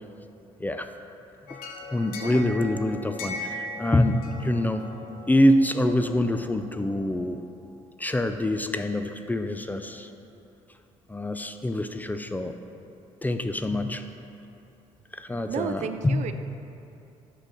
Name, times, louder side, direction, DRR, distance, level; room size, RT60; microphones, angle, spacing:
sound 1, 1.5-7.2, left 2 dB, 85° left, 0.7 m, -40 dB
voice 1, 1.9-4.8 5.3-7.4 8.0-10.1 11.1-12.5 13.2-14.0 15.1-16.2, left 1 dB, 10° left, 7 dB, 0.4 m, -25 dB
voice 2, 15.5-16.3, right 8 dB, 55° right, 9 dB, 0.4 m, -32 dB
6.2 x 3.9 x 6.2 m, 2.8 s
supercardioid pair, 65°, 14 cm